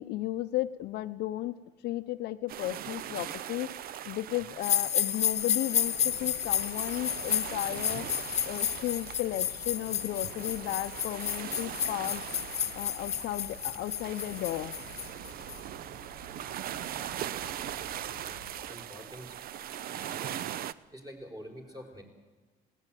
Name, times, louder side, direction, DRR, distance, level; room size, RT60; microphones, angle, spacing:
voice 1, 0.0-1.5 1.8-12.2 12.7-14.7, left 15 dB, 80° left, 7 dB, 0.6 m, -34 dB
sound 1, 2.5-20.7, right 11 dB, 60° right, 0.6 m, -41 dB
sound 2, 4.6-15.6, left 9 dB, 40° left, 0.6 m, -32 dB
sound 3, 5.9-18.6, right 2 dB, 80° right, 6.2 m, -51 dB
voice 2, 17.8-18.4 18.7-19.3 19.9-20.4 20.9-22.0, equal, 20° right, 3 dB, 5.0 m, -47 dB
20.0 x 17.0 x 9.1 m, 1.3 s
cardioid pair, 110°, 17 cm